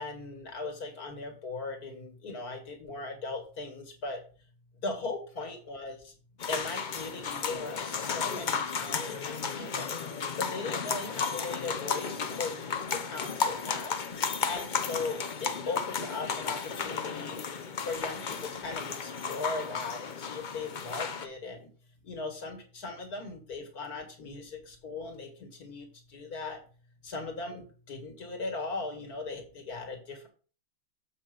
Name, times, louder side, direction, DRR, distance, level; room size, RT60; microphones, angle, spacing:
voice 1, 0.0-4.2 4.8-6.0 6.5-9.9 10.4-13.9 14.5-17.3 17.8-21.7 22.0-25.9 26.1-26.6 27.0-30.3, left 3 dB, 85° left, 3 dB, 2.4 m, -38 dB
sound 1, 6.4-21.3, left 6 dB, 45° left, 0.7 m, -34 dB
7.4 x 5.6 x 5.2 m, 0.39 s
omnidirectional pair, 1.6 m